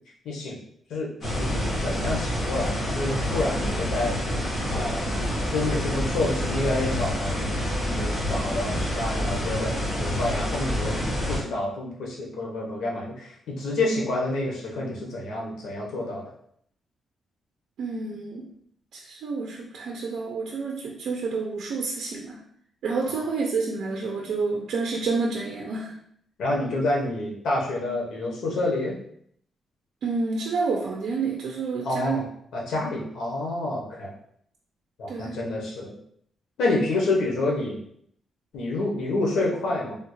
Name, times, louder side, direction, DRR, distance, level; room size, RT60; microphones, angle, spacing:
voice 1, 0.2-0.6 0.9-1.1 1.4-4.1 4.7-5.1 5.5-7.6 7.9-9.7 10.0-16.2 26.4-28.9 31.8-32.3 32.5-34.1 35.0-35.9 36.6-37.8 38.5-40.0, left 2 dB, 90° left, -2 dB, 0.9 m, -28 dB
sound 1, 1.2-11.4, equal, 40° left, 1.3 m, -27 dB
voice 2, 17.8-18.5 18.9-22.4 22.8-25.9 30.0-32.2 35.1-35.4, right 4 dB, 75° right, -1 dB, 0.4 m, -29 dB
3.4 x 2.3 x 3.0 m, 0.67 s
cardioid pair, 145°, 0 cm